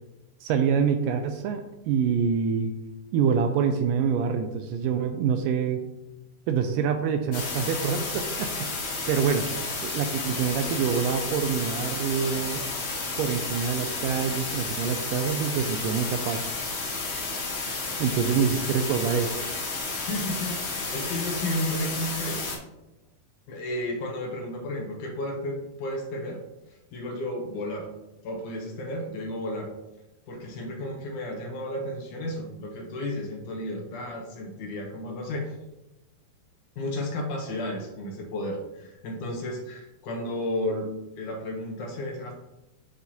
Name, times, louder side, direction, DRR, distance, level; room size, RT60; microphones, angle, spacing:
voice 1, 0.4-2.7 3.1-5.8 6.5-9.5 9.8-12.7 13.2-16.5 18.0-19.4, right 6 dB, 80° right, 6 dB, 2.0 m, -26 dB
sound 1, 7.3-22.6, left 3 dB, 50° left, 1.7 m, -32 dB
voice 2, 20.0-22.4 23.5-26.4 26.9-27.9 28.2-29.7 30.3-35.6 36.8-42.3, left 1 dB, 70° left, 1 dB, 2.2 m, -33 dB
9.8 x 4.9 x 2.8 m, 0.97 s
omnidirectional pair, 4.1 m